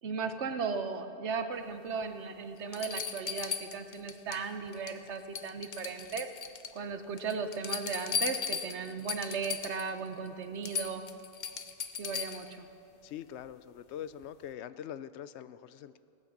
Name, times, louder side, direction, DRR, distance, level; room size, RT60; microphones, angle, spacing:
voice 1, 0.0-6.3 6.7-11.0 12.0-12.7, right 5 dB, 85° right, 8 dB, 1.3 m, -36 dB
sound 1, 2.0-2.1 2.7-4.4 4.7-5.1 5.3-6.8 7.2-9.9 10.3-10.4 10.6-12.5 14.2-14.3, left 6 dB, 50° left, 0.8 m, -37 dB
voice 2, 13.0-16.0, left 10 dB, 80° left, 14 dB, 0.9 m, -43 dB
18.0 x 9.5 x 7.3 m, 2.6 s
omnidirectional pair, 1.1 m